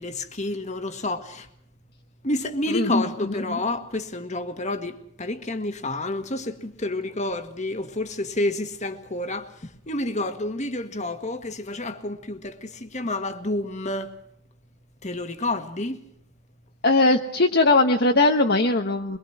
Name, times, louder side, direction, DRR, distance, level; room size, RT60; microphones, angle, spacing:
voice 1, 0.0-1.5 2.2-14.1 15.0-16.0, left 2 dB, 35° left, 1.8 m, -29 dB
voice 2, 16.8-19.2, left 2 dB, 50° left, 1.2 m, -19 dB
23.5 x 22.5 x 6.0 m
head